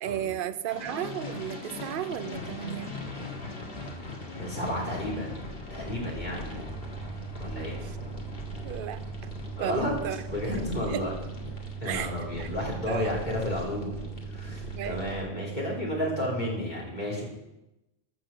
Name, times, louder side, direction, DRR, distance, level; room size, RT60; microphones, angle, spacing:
voice 1, 0.0-2.9 7.8-8.0 8.6-9.0 9.6-10.2 10.9-11.0 11.8-12.5 12.9-13.1 14.8-15.0, right 11 dB, 60° right, 12 dB, 0.8 m, -34 dB
sound 1, 0.7-15.2, left 2 dB, 60° left, 2.1 m, -40 dB
voice 2, 4.4-5.4 5.7-6.5 7.4-7.8 9.6-9.9 10.3-11.1 11.8-14.0 14.3-17.2, left 1 dB, 40° left, -4 dB, 4.0 m, -32 dB
sound 2, 6.7-16.7, right 8 dB, 15° right, 1.9 m, -41 dB
13.0 x 6.3 x 7.2 m, 0.94 s
omnidirectional pair, 1.1 m